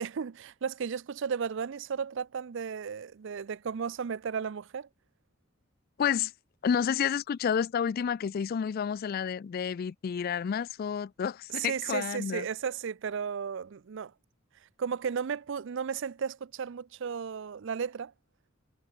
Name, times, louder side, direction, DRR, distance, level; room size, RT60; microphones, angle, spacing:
voice 1, 0.0-4.9 11.5-14.1 14.8-18.1, right 6 dB, 65° right, 0.5 m, -34 dB
voice 2, 6.0-6.3 6.6-12.5, left 7 dB, 45° left, 0.3 m, -30 dB
head